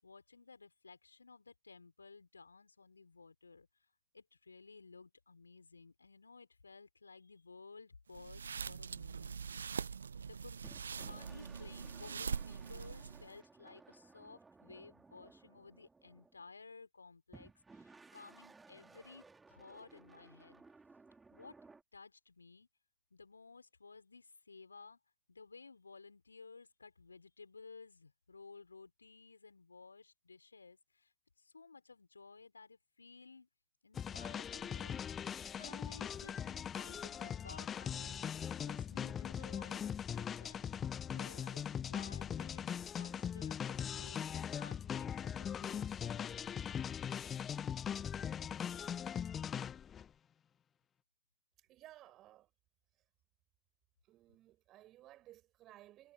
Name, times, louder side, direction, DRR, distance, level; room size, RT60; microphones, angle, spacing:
voice 1, 0.0-3.7 4.1-9.4 10.2-10.7 11.0-20.6 21.3-21.6 21.9-22.7 23.1-25.0 25.3-31.1 31.4-33.5 33.8-35.0 35.6-38.2 38.6-40.8 41.1-46.3, left 4 dB, 85° left, 5.1 m, -56 dB
sound 1, 8.1-13.4, right 6 dB, 80° right, 0.6 m, -43 dB
sound 2, 10.6-16.5 17.3-21.8, right 3 dB, 15° right, 4.1 m, -60 dB
sound 3, 33.9-50.1, left 8 dB, 30° left, 0.3 m, -40 dB
voice 2, 51.6-52.5 54.1-56.1, right 14 dB, 45° right, 7.8 m, -58 dB
figure-of-eight pair, 70°, 0 cm